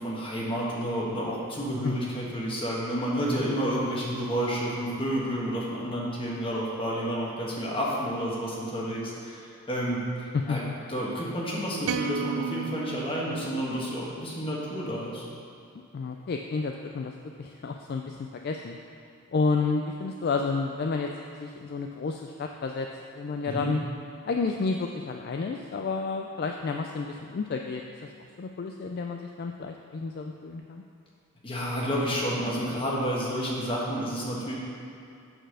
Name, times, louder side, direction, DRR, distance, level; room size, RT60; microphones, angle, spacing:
voice 1, 0.0-10.6 10.9-15.2 23.4-23.7 31.4-34.5, equal, 25° left, -4 dB, 1.3 m, -30 dB
voice 2, 10.3-10.7 15.9-18.2 18.4-18.8 19.3-22.9 23.2-23.8 24.2-28.1 28.4-30.8, left 4 dB, 45° left, 3 dB, 0.3 m, -30 dB
sound 1, 11.8-14.2, right 7 dB, 70° right, 0.4 m, -35 dB
7.7 x 4.1 x 6.3 m, 2.6 s
head